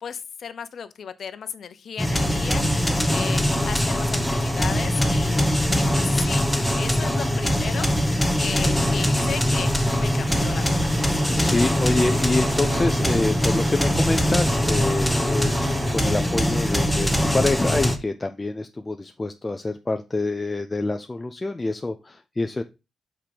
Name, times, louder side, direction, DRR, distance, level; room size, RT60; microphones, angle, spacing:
voice 1, 0.0-2.6 3.1-5.4 5.7-6.4 6.8-7.9 8.4-11.3, left 7 dB, 60° left, 0.7 m, -35 dB
sound 1, 2.0-18.0, equal, ahead, 0.9 m, -22 dB
sound 2, 10.3-15.9, right 4 dB, 80° right, 1.3 m, -38 dB
voice 2, 11.3-15.5 15.9-22.6, left 2 dB, 20° left, 0.5 m, -26 dB
5.9 x 4.4 x 5.0 m
cardioid pair, 90°, 0 cm